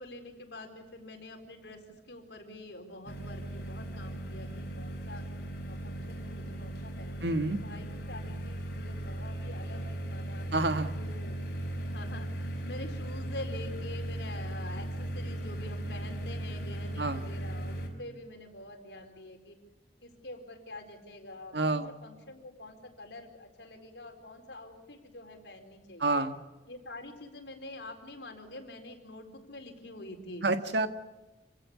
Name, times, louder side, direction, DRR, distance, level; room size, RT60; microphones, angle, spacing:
voice 1, 0.0-5.2 5.7-10.5 11.0-11.4 11.8-19.6 20.0-26.2 26.7-30.4, left 2 dB, 75° left, 4 dB, 4.3 m, -46 dB
sound 1, 3.1-17.9, right 1 dB, 60° left, 5.6 m, -37 dB
voice 2, 7.2-7.6 10.5-11.0 17.0-17.3 21.5-21.9 26.0-26.4 30.4-30.9, right 2 dB, 75° right, 8 dB, 1.6 m, -28 dB
27.0 x 17.0 x 8.4 m, 1.1 s
head